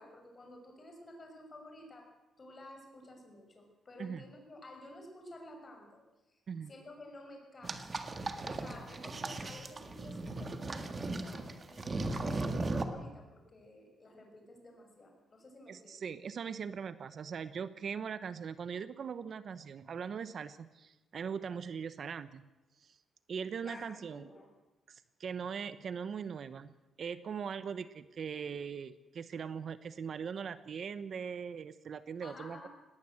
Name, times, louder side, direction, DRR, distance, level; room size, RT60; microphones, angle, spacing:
voice 1, 0.0-2.1 2.4-6.0 6.3-6.4 6.7-8.0 8.5-16.0 23.6-24.5 32.2-32.7, left 1 dB, 30° left, 3 dB, 5.9 m, -52 dB
sound 1, 7.6-12.8, right 2 dB, 30° right, 1.9 m, -37 dB
voice 2, 15.7-22.5 22.8-23.0 23.3-24.3 24.9-26.7 27.0-32.7, right 6 dB, 55° right, 14 dB, 0.9 m, -40 dB
19.5 x 18.5 x 7.8 m, 1.0 s
cardioid pair, 125°, 0 cm